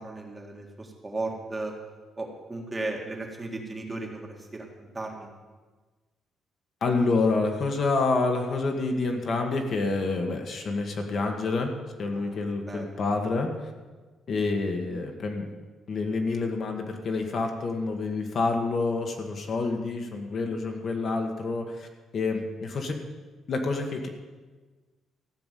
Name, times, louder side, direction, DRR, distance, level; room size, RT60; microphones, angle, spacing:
voice 1, 0.0-1.7 2.2-5.3 12.1-12.4 12.7-13.0, right 2 dB, 15° right, 1 dB, 1.7 m, -36 dB
voice 2, 6.8-11.7 12.0-13.7 14.3-15.5 15.9-21.9 22.1-23.0 23.5-24.1, left 3 dB, 40° left, 3 dB, 1.5 m, -28 dB
15.0 x 6.0 x 9.2 m, 1.3 s
cardioid pair, 160°, 0 cm